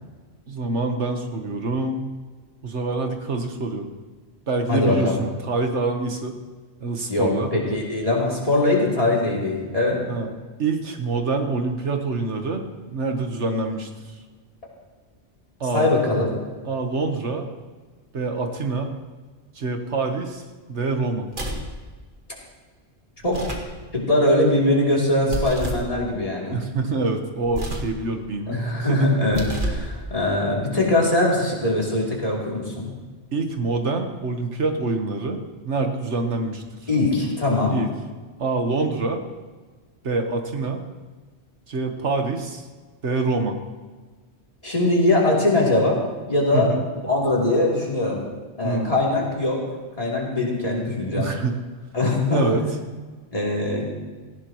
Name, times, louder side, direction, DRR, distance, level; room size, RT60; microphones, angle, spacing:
voice 1, 0.5-2.0 2.6-3.9 4.5-6.3 6.8-7.5 10.1-10.3 10.6-12.6 12.9-13.9 15.6-16.0 16.6-17.5 18.1-18.9 19.5-20.4 20.7-21.3 25.2-25.3 26.4-28.6 28.9-29.2 33.3-35.4 35.6-36.6 37.7-37.9 38.4-39.2 40.0-40.8 41.7-42.6 43.0-43.6 46.5-46.8 48.6-48.9 51.1-51.6 52.3-52.6, right 3 dB, 80° right, 4 dB, 1.7 m, -25 dB
voice 2, 4.7-5.1 7.1-10.0 15.7-16.3 23.2-23.4 23.9-26.6 28.5-32.9 36.9-37.8 44.6-46.0 46.3-46.7 47.0-48.2 48.6-49.6 50.0-51.2 51.9-52.5 53.3-53.8, left 2 dB, 30° left, -4 dB, 3.4 m, -21 dB
Pulling a lever, 21.3-21.7 23.2-23.7 25.3-25.9 27.4-28.0 29.2-29.9, right 1 dB, 50° right, 1.9 m, -29 dB
17.5 x 15.5 x 3.1 m, 1.4 s
omnidirectional pair, 1.2 m